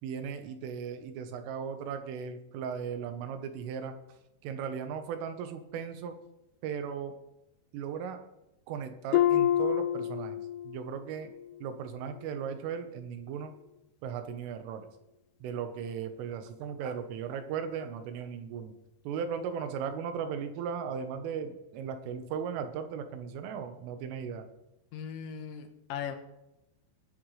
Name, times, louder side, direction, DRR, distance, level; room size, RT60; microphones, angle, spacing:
voice 1, 0.0-3.9 4.4-6.2 6.6-7.1 7.7-8.2 8.7-10.4 10.7-11.3 11.6-13.5 14.0-14.9 15.4-18.7 19.1-24.5, right 7 dB, 85° right, 8 dB, 3.7 m, -37 dB
Harp, 9.1-10.9 11.3-11.7 12.2-12.3, left 12 dB, 90° left, 3.1 m, -28 dB
voice 2, 24.9-26.2, left 8 dB, 75° left, 6 dB, 3.2 m, -38 dB
20.5 x 10.5 x 3.3 m, 0.90 s
omnidirectional pair, 5.6 m